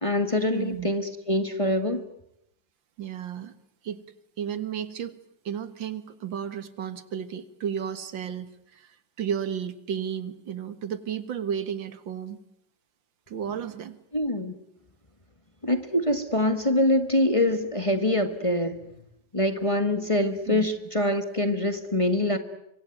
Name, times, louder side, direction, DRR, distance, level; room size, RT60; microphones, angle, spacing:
voice 1, 0.0-2.0 14.1-14.5 15.6-18.8 19.3-22.4, left 1 dB, 20° left, 9 dB, 1.6 m, -24 dB
voice 2, 0.5-0.9 3.0-3.5 3.8-4.0 4.4-5.2 5.5-8.5 8.7-12.4 13.3-14.0 20.5-20.7, right 8 dB, 85° right, 13 dB, 2.2 m, -33 dB
25.5 x 24.0 x 9.3 m, 0.79 s
omnidirectional pair, 2.0 m